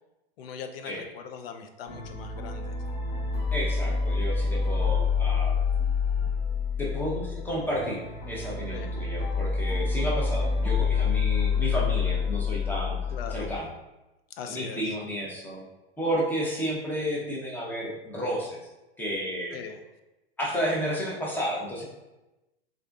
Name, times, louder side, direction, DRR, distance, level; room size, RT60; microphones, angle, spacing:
voice 1, 0.4-2.7 8.7-8.9 13.1-13.5 14.3-15.0 19.5-19.8, left 6 dB, 70° left, 6 dB, 0.5 m, -40 dB
sound 1, 1.9-13.6, left 5 dB, 50° left, 1.0 m, -27 dB
voice 2, 3.5-5.6 6.8-13.0 13.3-13.7 14.5-15.6 16.0-18.6 19.0-19.6 20.4-21.8, equal, 5° left, -4 dB, 0.5 m, -31 dB
3.4 x 2.5 x 2.3 m, 1.0 s
hypercardioid pair, 125°, 31 cm